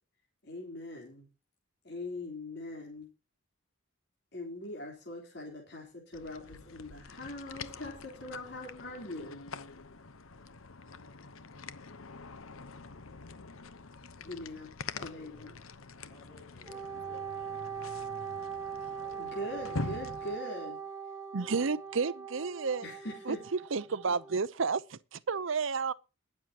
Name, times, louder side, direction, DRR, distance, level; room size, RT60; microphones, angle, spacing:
voice 1, 0.4-1.3 1.8-3.1 4.3-9.4 14.2-14.7 15.0-15.5 19.2-20.8 22.8-23.4, left 1 dB, 50° left, 3.7 m, -42 dB
sound 1, 6.1-20.4, left 3 dB, 75° left, 1.0 m, -45 dB
voice 2, 15.0-15.5 16.1-17.6 19.0-19.6 24.1-24.2, left 4 dB, 5° left, 7.4 m, -57 dB
Wind instrument woodwind instrument, 16.7-24.4, right 7 dB, 15° right, 1.5 m, -41 dB
voice 3, 21.3-22.9 23.3-23.4 23.7-25.9, right 5 dB, 65° right, 0.7 m, -31 dB
21.5 x 7.3 x 2.9 m
head